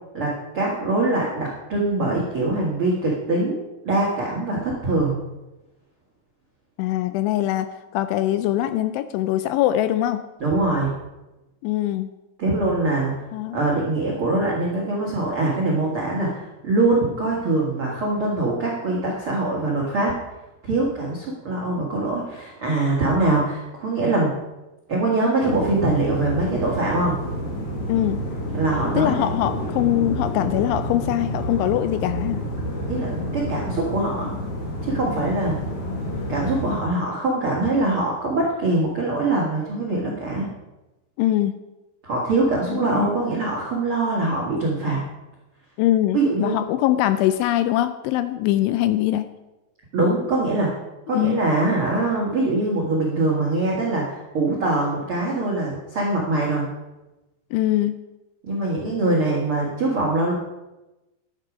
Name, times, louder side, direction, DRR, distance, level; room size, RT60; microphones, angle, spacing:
voice 1, 0.1-3.6 3.8-5.2 10.4-10.9 12.4-13.1 13.5-20.1 20.6-24.3 24.9-27.1 28.5-29.3 32.9-34.3 34.8-35.6 36.3-40.5 42.0-45.0 46.1-46.6 49.9-50.7 51.1-56.7 58.4-60.3, right 2 dB, 90° right, -4 dB, 1.1 m, -23 dB
voice 2, 6.8-10.2 11.6-12.1 13.3-13.6 27.9-28.2 29.0-32.4 41.2-41.5 42.7-43.1 45.8-49.3 51.1-51.4 57.5-58.0, left 13 dB, 85° left, 11 dB, 2.8 m, -22 dB
sound 1, 25.4-36.8, equal, 50° left, 2.3 m, -29 dB
11.5 x 10.5 x 5.0 m, 1.0 s
omnidirectional pair, 5.7 m